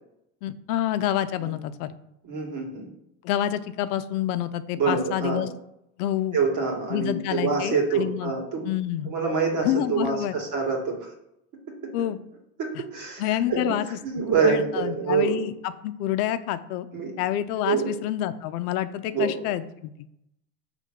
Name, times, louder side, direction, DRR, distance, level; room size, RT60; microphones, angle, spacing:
voice 1, 0.4-2.0 3.2-5.5 6.0-6.4 6.9-8.3 8.6-9.1 9.6-10.3 11.9-12.2 13.2-14.0 14.4-16.9 17.2-19.9, left 12 dB, 85° left, 11 dB, 0.7 m, -28 dB
voice 2, 2.2-2.9 4.8-5.4 6.3-8.6 9.1-11.1 11.7-11.9 12.6-13.8 14.0-15.4 16.9-17.1 17.6-17.9 19.1-19.4, right 5 dB, 45° right, 1 dB, 1.9 m, -26 dB
6.3 x 3.3 x 5.1 m, 0.80 s
supercardioid pair, 140°, 44 cm